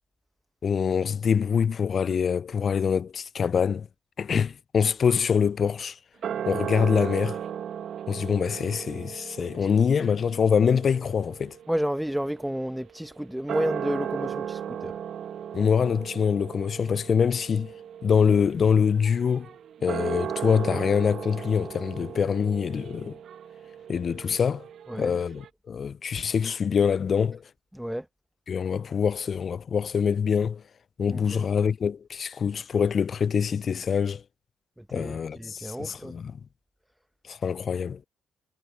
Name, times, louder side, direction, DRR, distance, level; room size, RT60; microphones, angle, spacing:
voice 1, 0.6-3.9 4.2-6.0 6.5-7.4 8.1-11.6 15.5-17.7 18.0-19.5 19.8-23.2 23.9-24.7 24.9-27.4 28.5-30.6 31.0-34.2 34.9-36.3 37.3-38.0, left 7 dB, 50° left, 0.3 m, -25 dB
sound 1, 6.2-12.9 13.3-25.5, right 9 dB, 60° right, 1.6 m, -36 dB
voice 2, 11.7-15.0 24.9-25.1 27.7-28.1 31.1-31.4 34.8-36.2, equal, 5° right, 1.1 m, -31 dB
hypercardioid pair, 45°, 0 cm